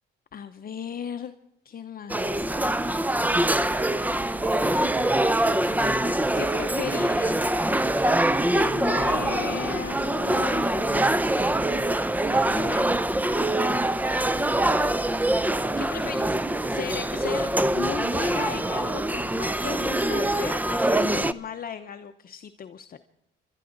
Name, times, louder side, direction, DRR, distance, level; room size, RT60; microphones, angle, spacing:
voice 1, 0.3-1.3 1.6-2.5 5.1-7.9 8.5-11.2 12.3-13.0 15.8-23.0, left 8 dB, 45° left, 7 dB, 0.8 m, -37 dB
sound 1, 2.1-21.3, right 1 dB, 10° right, 0.6 m, -24 dB
27.5 x 12.5 x 3.9 m, 0.80 s
cardioid pair, 90°, 20 cm